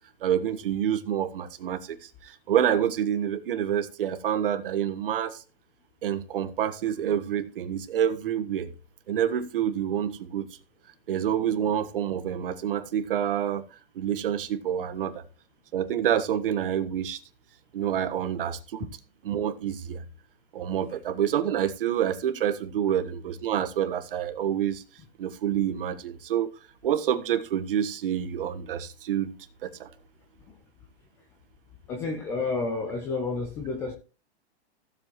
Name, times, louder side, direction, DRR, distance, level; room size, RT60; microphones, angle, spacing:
voice 1, 0.2-5.4 6.0-8.7 9.1-10.6 11.1-15.2 15.7-17.2 17.7-19.0 19.2-20.0 20.5-24.8 25.2-26.5 26.8-29.3 29.6-29.9, right 9 dB, 55° right, 1.5 m, -27 dB
voice 2, 31.9-33.9, left 3 dB, 10° left, 0.5 m, -30 dB
16.0 x 7.5 x 3.1 m
hypercardioid pair, 165°, 33 cm